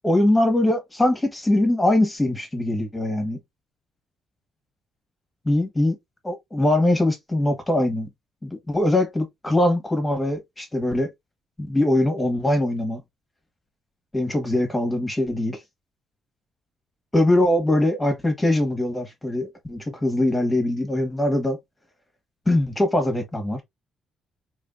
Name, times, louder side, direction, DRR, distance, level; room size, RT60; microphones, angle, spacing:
voice 1, 0.0-3.4 5.5-6.0 6.2-8.1 8.4-11.1 11.6-13.0 14.1-15.6 17.1-21.6 22.5-23.6, left 1 dB, 15° left, 1.8 m, -22 dB
4.3 x 3.3 x 2.6 m
cardioid pair, 90°, 0 cm